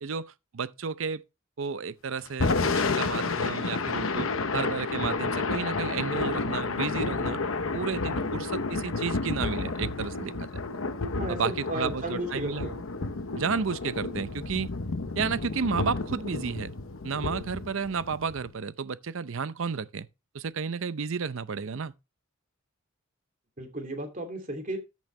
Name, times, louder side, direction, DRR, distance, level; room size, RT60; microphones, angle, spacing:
voice 1, 0.0-1.2 1.6-7.4 7.7-10.5 11.3-12.7 13.4-14.7 15.2-16.7 17.0-20.1 20.3-21.9, right 5 dB, 70° right, 0.6 m, -32 dB
Thunder / Rain, 2.3-18.5, left 3 dB, 75° left, 0.9 m, -31 dB
voice 2, 11.2-12.8 23.6-24.8, right 1 dB, 40° right, 2.8 m, -34 dB
13.5 x 6.3 x 3.2 m
head